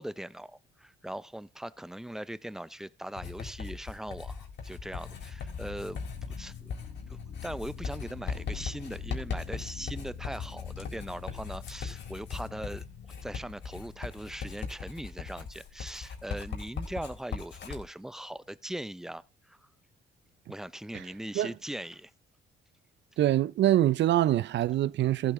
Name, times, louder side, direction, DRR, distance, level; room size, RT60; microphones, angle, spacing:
voice 1, 0.0-6.7 7.1-12.8 13.2-19.6 20.5-22.1, right 1 dB, ahead, 0.6 m, -40 dB
Writing, 3.2-17.8, left 5 dB, 65° left, 4.0 m, -39 dB
sound 1, 4.7-14.5, left 7 dB, 85° left, 2.6 m, -45 dB
voice 2, 23.2-25.3, right 13 dB, 65° right, 0.5 m, -24 dB
15.0 x 8.7 x 3.7 m
cardioid pair, 90°, 20 cm